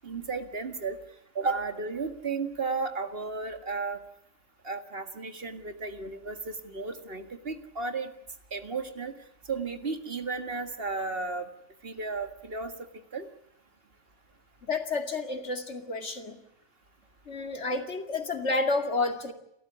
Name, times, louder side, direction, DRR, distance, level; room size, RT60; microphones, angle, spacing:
voice 1, 0.0-1.0 1.4-4.0 4.6-8.1 8.5-9.1 9.5-11.5 11.8-12.7 13.1-13.3, right 4 dB, 55° right, 8 dB, 2.1 m, -33 dB
voice 2, 14.6-16.4 17.3-19.3, left 3 dB, 70° left, 6 dB, 2.6 m, -30 dB
29.5 x 14.0 x 9.9 m, 0.76 s
omnidirectional pair, 1.2 m